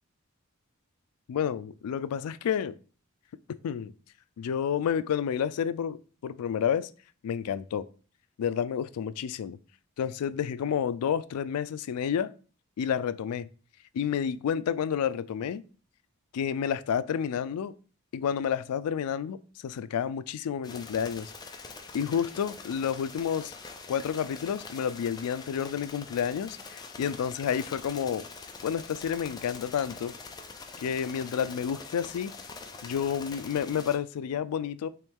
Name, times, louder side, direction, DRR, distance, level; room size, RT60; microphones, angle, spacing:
voice 1, 1.3-2.7 3.5-3.9 4.4-6.9 7.2-7.9 8.4-9.6 10.0-12.3 12.8-13.5 13.9-15.6 16.3-17.7 18.1-21.3 21.9-23.5 23.9-28.2 28.6-30.1 30.8-32.3 32.8-34.9, left 8 dB, 90° left, 0.3 m, -30 dB
sound 1, 20.6-34.0, left 4 dB, 20° left, 0.4 m, -44 dB
4.4 x 3.1 x 3.5 m
head